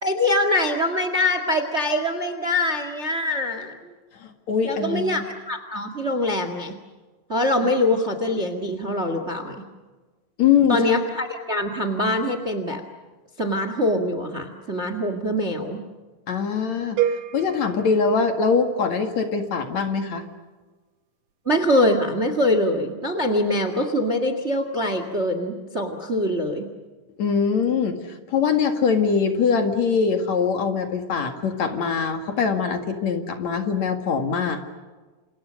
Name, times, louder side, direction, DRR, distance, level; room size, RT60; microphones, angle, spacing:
voice 1, 0.0-3.9 4.6-6.8 7.3-9.6 10.7-12.8 13.4-15.8 21.4-26.7, left 1 dB, 25° right, 8 dB, 1.6 m, -23 dB
voice 2, 4.2-5.2 10.4-10.8 16.3-20.2 27.2-28.0 28.3-34.6, left 6 dB, 60° left, 6 dB, 3.0 m, -22 dB
sound 1, 17.0-19.0, right 10 dB, 85° right, 2.9 m, -29 dB
29.0 x 28.0 x 6.4 m, 1.3 s
omnidirectional pair, 3.9 m